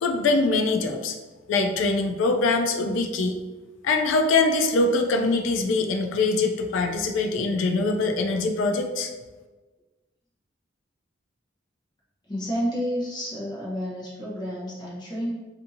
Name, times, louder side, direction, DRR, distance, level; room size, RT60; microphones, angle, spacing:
voice 1, 0.0-1.2 1.5-3.4 3.8-9.1, left 3 dB, 75° left, 4 dB, 0.3 m, -23 dB
voice 2, 12.3-15.3, equal, 20° left, -7 dB, 0.8 m, -30 dB
2.7 x 2.6 x 2.5 m, 1.2 s
head